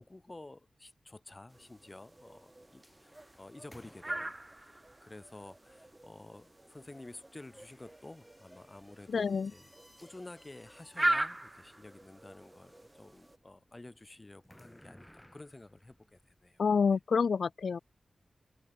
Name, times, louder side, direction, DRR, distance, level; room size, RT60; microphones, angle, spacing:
voice 1, 0.0-9.7 10.0-16.6, left 2 dB, 20° left, 3.0 m, -51 dB
sound 1, 1.5-13.4, right 1 dB, 15° right, 0.6 m, -40 dB
sound 2, 1.6-16.9, equal, 5° left, 3.7 m, -63 dB
voice 2, 9.1-9.5 16.6-17.8, left 5 dB, 65° left, 0.4 m, -28 dB
open air
wide cardioid pair, 155°, 0 cm